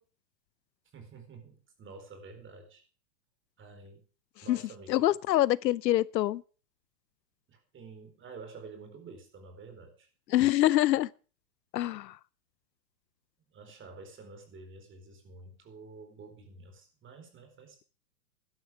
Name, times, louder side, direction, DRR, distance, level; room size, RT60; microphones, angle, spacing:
voice 1, 0.9-2.8 3.6-4.0 4.4-5.1 7.5-10.1 13.5-17.9, right 4 dB, 25° right, 4.2 m, -49 dB
voice 2, 4.9-6.4 10.3-11.1 11.7-12.2, left 14 dB, 85° left, 0.7 m, -25 dB
13.0 x 12.0 x 4.8 m
hypercardioid pair, 125°, 49 cm